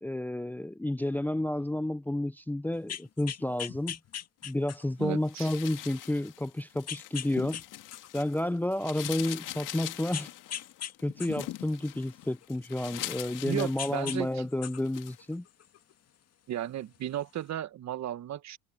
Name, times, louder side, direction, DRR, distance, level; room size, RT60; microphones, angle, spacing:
voice 1, 0.0-4.0 4.4-7.6 8.1-10.3 11.0-15.4, left 1 dB, 5° left, 0.6 m, -31 dB
sound 1, 2.7-5.0 5.6-5.7 6.9-7.6 7.9-9.2 10.1-10.9 11.2-13.4 13.8-14.2 14.5-15.9 16.9-17.0, left 9 dB, 45° left, 2.2 m, -40 dB
voice 2, 5.0-5.5 13.4-14.4 16.5-18.6, right 11 dB, 50° right, 1.5 m, -35 dB
sound 2, 5.3-8.4 8.7-14.4 14.8-15.2, left 15 dB, 65° left, 2.1 m, -42 dB
supercardioid pair, 85°, 34 cm